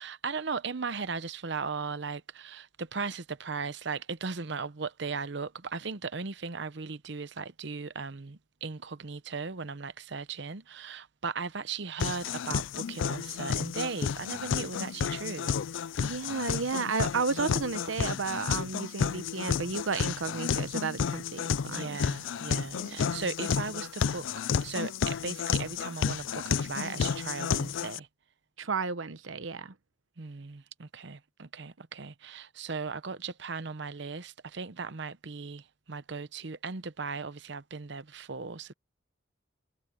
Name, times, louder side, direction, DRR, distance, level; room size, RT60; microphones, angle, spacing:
voice 1, 0.0-15.6 21.7-24.3 24.6-28.1 30.2-38.7, right 4 dB, 60° right, 0.8 m, -37 dB
sound 1, 12.0-28.0, left 7 dB, 75° left, 0.4 m, -31 dB
voice 2, 16.0-22.0 22.8-23.2 28.6-29.7, right 4 dB, 85° right, 1.0 m, -33 dB
head